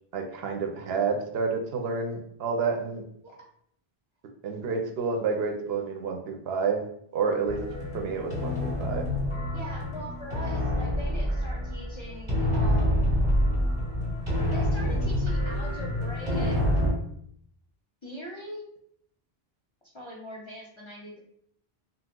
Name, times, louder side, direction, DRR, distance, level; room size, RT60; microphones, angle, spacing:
voice 1, 0.1-3.0 4.4-6.8 7.1-7.6 7.9-9.1, right 5 dB, 75° right, 2 dB, 0.8 m, -29 dB
sound 1, 7.5-16.9, equal, 30° right, 0.8 m, -27 dB
voice 2, 9.5-13.1 14.3-16.6 18.0-18.6 19.9-21.2, equal, 40° left, -2 dB, 0.5 m, -41 dB
2.9 x 2.0 x 3.6 m, 0.68 s
omnidirectional pair, 1.0 m